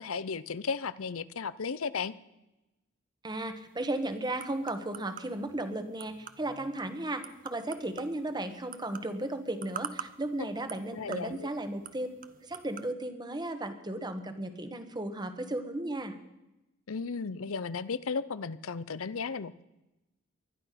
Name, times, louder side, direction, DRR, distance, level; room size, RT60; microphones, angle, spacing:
voice 1, 0.0-2.1 10.9-11.5 16.9-19.6, left 5 dB, 85° left, 16 dB, 0.7 m, -35 dB
voice 2, 3.2-12.1 12.4-16.2, right 1 dB, 20° right, 8 dB, 1.4 m, -35 dB
sound 1, 3.5-12.9, right 7 dB, 40° right, 0.8 m, -47 dB
20.5 x 12.5 x 5.8 m, 0.95 s
head